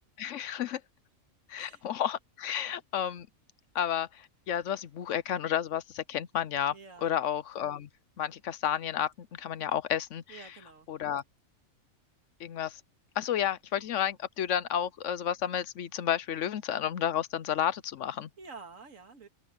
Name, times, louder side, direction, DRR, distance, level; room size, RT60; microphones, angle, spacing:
voice 1, 0.2-0.8 1.5-3.3 3.7-6.8 7.0-7.9 8.2-10.5 10.9-11.2 12.4-12.8 13.2-18.3, left 10 dB, 65° left, 1.0 m, -31 dB
voice 2, 1.5-1.9 6.7-7.1 10.3-10.9 18.4-19.3, right 4 dB, 65° right, 2.4 m, -49 dB
open air
omnidirectional pair, 1.5 m